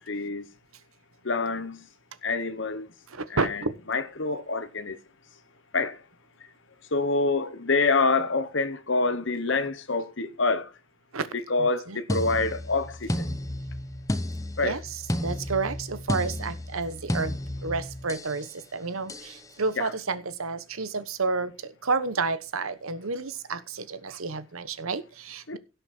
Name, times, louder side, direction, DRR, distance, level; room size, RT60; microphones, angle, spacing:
voice 1, 0.1-0.4 1.2-1.9 2.2-2.9 3.3-3.6 3.9-5.0 5.7-6.0 6.9-10.7 11.3-13.2 14.6-14.8 19.8-19.9 25.5-25.6, left 3 dB, 60° left, 1.2 m, -26 dB
voice 2, 3.1-3.8 11.1-11.3 11.6-12.3 14.6-17.3 17.6-25.6, right 4 dB, 80° right, 1.2 m, -31 dB
sound 1, 12.1-18.4 19.1-19.4, left 1 dB, 15° left, 0.9 m, -32 dB
17.0 x 6.5 x 4.4 m
head